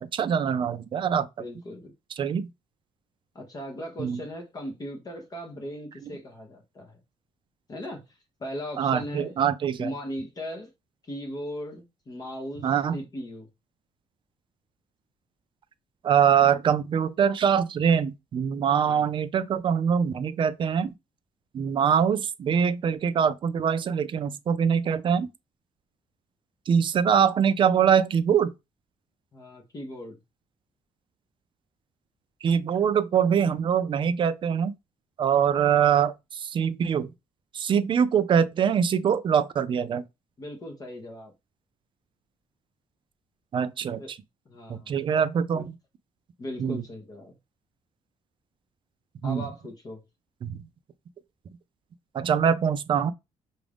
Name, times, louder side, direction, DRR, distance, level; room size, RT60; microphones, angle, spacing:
voice 1, 0.0-1.3 2.2-2.5 4.0-4.2 8.8-9.9 12.6-13.0 16.0-20.9 21.5-25.3 26.7-28.5 32.4-34.7 35.2-37.1 37.5-40.0 43.5-44.0 44.7-45.7 46.6-46.8 49.2-49.5 50.4-50.6 52.1-53.1, right 7 dB, 40° right, 0.4 m, -23 dB
voice 2, 1.4-1.9 3.3-7.0 7.7-9.4 9.8-10.7 11.0-13.5 18.8-19.1 29.3-30.2 40.4-41.3 44.0-44.1 44.5-44.9 45.5-45.6 46.4-47.3 49.2-50.0, equal, 30° left, 1.0 m, -38 dB
5.9 x 2.5 x 3.4 m
cardioid pair, 150°, 13 cm